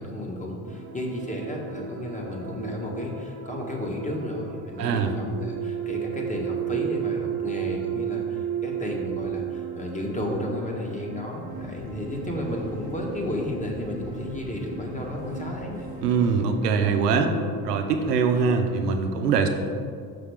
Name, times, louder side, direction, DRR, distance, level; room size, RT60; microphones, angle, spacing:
voice 1, 0.0-15.9 17.0-17.1, left 1 dB, 15° left, -1 dB, 1.3 m, -32 dB
sound 1, 0.7-18.8, right 9 dB, 40° right, 1.0 m, -35 dB
voice 2, 4.8-5.1 16.0-17.3 17.6-19.5, right 5 dB, 85° right, 5 dB, 0.7 m, -23 dB
sound 2, 11.5-16.5, left 1 dB, 80° left, 1.3 m, -41 dB
6.0 x 5.7 x 3.4 m, 2.3 s
hypercardioid pair, 65°, 46 cm